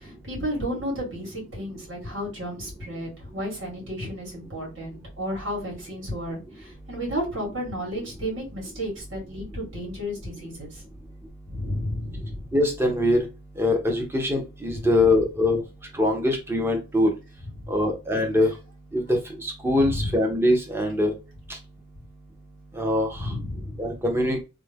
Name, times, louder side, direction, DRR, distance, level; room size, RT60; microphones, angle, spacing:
voice 1, 0.0-10.8 11.5-12.5 14.7-14.9 17.6-17.7 19.7-20.1 23.1-23.8, equal, 65° right, -2 dB, 2.0 m, -32 dB
voice 2, 12.5-13.3 13.6-15.6 16.0-17.1 17.7-18.5 18.9-21.1 22.8-23.1 23.8-24.4, left 1 dB, 10° right, 2 dB, 0.7 m, -22 dB
3.3 x 2.2 x 3.5 m, 0.29 s
head